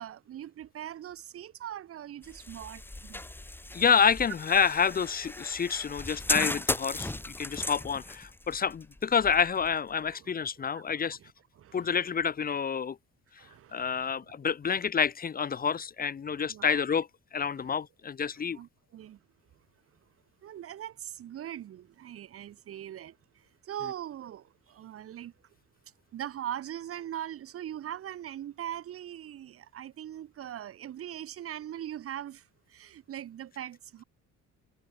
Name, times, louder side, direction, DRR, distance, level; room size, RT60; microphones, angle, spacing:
voice 1, 0.0-3.3 10.1-11.3 11.6-12.1 13.4-14.8 15.6-15.7 16.3-16.8 17.6-17.7 18.5-19.2 20.4-25.3 26.1-34.0, right 11 dB, 50° right, 1.0 m, -41 dB
sound 1, 2.2-10.1, left 2 dB, 5° left, 1.3 m, -37 dB
voice 2, 3.7-11.2 11.7-13.0 13.7-18.6, left 6 dB, 30° left, 1.0 m, -28 dB
cardioid pair, 145°, 31 cm